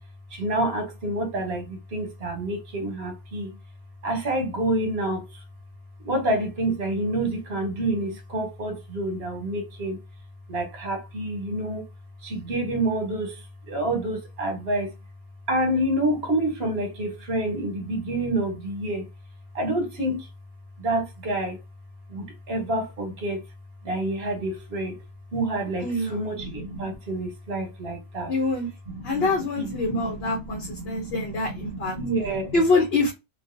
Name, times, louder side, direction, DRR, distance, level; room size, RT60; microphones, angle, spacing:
voice 1, 0.3-3.5 4.0-5.4 6.0-10.0 10.5-11.8 12.2-13.4 13.7-14.9 15.5-19.1 19.5-20.3 20.8-21.6 22.1-23.4 23.8-25.0 25.3-28.3 28.9-29.3 29.6-32.6, right 1 dB, 70° right, 1.1 m, -28 dB
voice 2, 25.8-26.2 28.3-28.7 29.0-32.0 32.5-33.1, left 3 dB, 70° left, 0.9 m, -25 dB
2.3 x 2.3 x 2.5 m
omnidirectional pair, 1.1 m